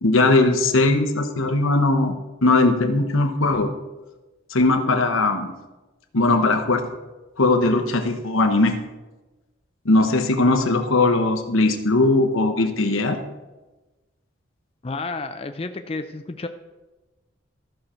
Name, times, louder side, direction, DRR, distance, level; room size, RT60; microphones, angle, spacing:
voice 1, 0.0-3.7 4.5-5.5 6.1-6.9 7.4-8.8 9.8-13.2, left 2 dB, 90° left, 6 dB, 1.0 m, -19 dB
voice 2, 14.8-16.5, left 3 dB, 30° left, 7 dB, 0.4 m, -31 dB
13.5 x 6.5 x 4.4 m, 1.1 s
head